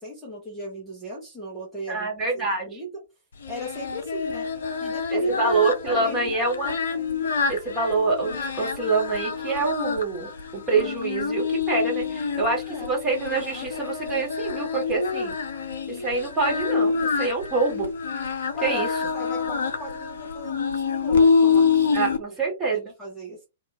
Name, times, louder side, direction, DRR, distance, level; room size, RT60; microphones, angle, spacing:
voice 1, 0.0-2.9 3.5-4.5 4.8-5.5 5.9-6.3 12.7-12.9 18.5-18.9 19.1-22.3 22.7-23.4, equal, ahead, -5 dB, 1.1 m, -37 dB
voice 2, 1.9-2.8 5.1-6.7 7.5-15.3 15.9-17.9 18.6-18.9 21.9-22.8, right 3 dB, 15° right, -2 dB, 1.6 m, -26 dB
Singing, 3.4-22.2, left 5 dB, 60° left, 0.6 m, -26 dB
2.8 x 2.6 x 2.7 m, 0.25 s
figure-of-eight pair, 110°, 0 cm